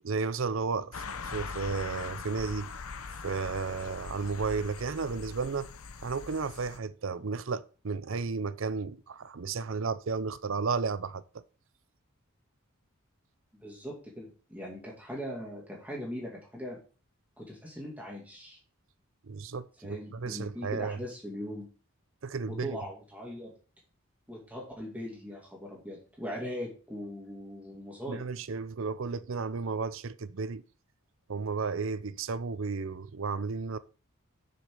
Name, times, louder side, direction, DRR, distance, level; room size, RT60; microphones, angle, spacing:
voice 1, 0.0-2.7 3.2-5.7 6.0-11.4 19.2-21.0 22.2-22.8 28.1-30.6 31.3-33.8, right 4 dB, 60° right, 0.5 m, -33 dB
sound 1, 0.9-6.8, left 4 dB, 80° left, 0.7 m, -41 dB
voice 2, 13.6-16.8 17.4-18.6 19.8-21.7 22.5-23.5 24.3-28.2, equal, 5° right, 2.4 m, -40 dB
6.9 x 6.6 x 4.8 m
head